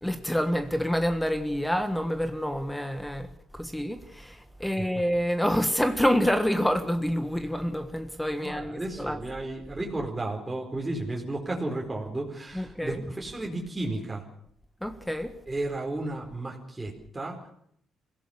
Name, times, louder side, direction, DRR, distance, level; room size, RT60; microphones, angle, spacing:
voice 1, 0.0-9.2 12.5-13.0 14.8-15.3, equal, 5° left, 1.5 m, -27 dB
voice 2, 8.4-14.2 15.5-17.4, right 2 dB, 15° right, 4.5 m, -33 dB
25.0 x 17.0 x 6.7 m
cardioid pair, 90°, 0 cm